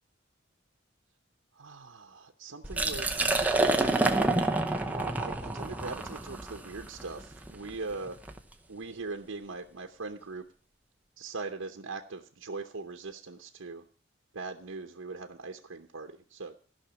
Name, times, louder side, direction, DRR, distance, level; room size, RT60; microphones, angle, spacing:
voice 1, 1.6-3.1 4.7-8.2 8.7-10.4 11.2-13.8 14.3-16.6, right 3 dB, 85° right, 4 dB, 0.9 m, -41 dB
Liquid, 2.6-8.4, right 2 dB, 10° right, 0.8 m, -28 dB
15.0 x 6.0 x 7.0 m, 0.42 s
head